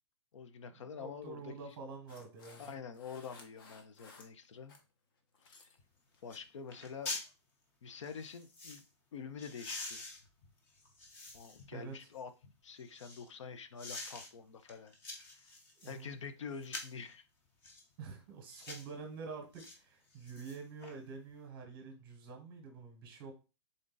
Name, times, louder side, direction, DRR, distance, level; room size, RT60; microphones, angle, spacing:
voice 1, 0.3-1.8 2.6-4.8 5.4-5.7 6.2-7.2 7.8-8.8 9.1-10.1 11.3-12.3 12.6-15.5 15.9-17.3 21.8-22.0, left 6 dB, 90° left, 10 dB, 0.6 m, -47 dB
voice 2, 1.0-2.8 11.7-12.1 15.8-16.2 18.0-23.3, right 4 dB, 25° right, 2 dB, 0.9 m, -47 dB
sound 1, 2.1-4.9 5.2-5.8 6.1-6.4 7.0-7.2, left 4 dB, 45° left, 0.8 m, -59 dB
sound 2, 5.8-5.9 6.3-6.4 6.7-7.3 8.0-8.8 9.4-11.7 12.2-13.3 13.8-14.3 14.7-16.0 16.6-17.0 17.6-17.9 18.5-18.9 19.6-19.8 20.1-20.9 21.3-21.4, left 2 dB, 15° left, 0.5 m, -46 dB
3.7 x 2.6 x 3.8 m, 0.30 s
hypercardioid pair, 170°, 15 cm